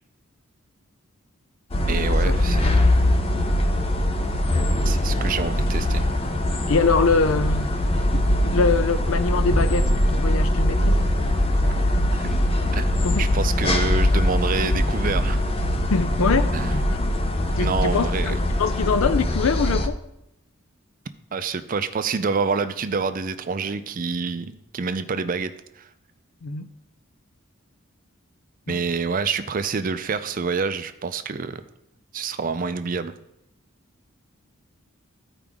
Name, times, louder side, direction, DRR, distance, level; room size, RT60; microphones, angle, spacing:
sound 1, 1.7-19.9, left 1 dB, 25° left, 0.6 m, -22 dB
voice 1, 1.9-2.7 4.9-6.1 11.6-11.7 12.1-12.3 12.7-12.9 13.2-15.4 16.5-16.7 17.6-18.3 21.3-25.5 25.8-25.9 28.7-31.6 32.1-33.1, right 5 dB, 40° right, 0.4 m, -27 dB
voice 2, 6.7-11.0 13.0-13.2 15.9-16.9 17.6-20.0 26.4-26.7 28.7-28.8, left 4 dB, 75° left, 0.5 m, -24 dB
13.5 x 4.9 x 3.6 m
head